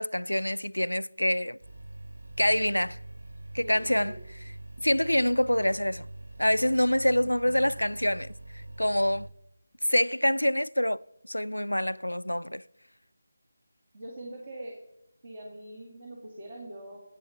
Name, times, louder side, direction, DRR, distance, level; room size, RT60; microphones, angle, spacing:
voice 1, 0.0-1.6 2.4-3.0 3.5-4.1 4.8-6.1 6.4-8.3 8.8-9.3 9.8-11.0 11.3-12.6, left 1 dB, 80° left, 0.3 m, -26 dB
sound 1, 1.6-9.3, right 2 dB, 65° right, 1.4 m, -44 dB
voice 2, 13.9-14.7 15.2-17.0, right 1 dB, 35° right, 2.0 m, -42 dB
10.5 x 8.9 x 6.9 m
figure-of-eight pair, 160°, 0 cm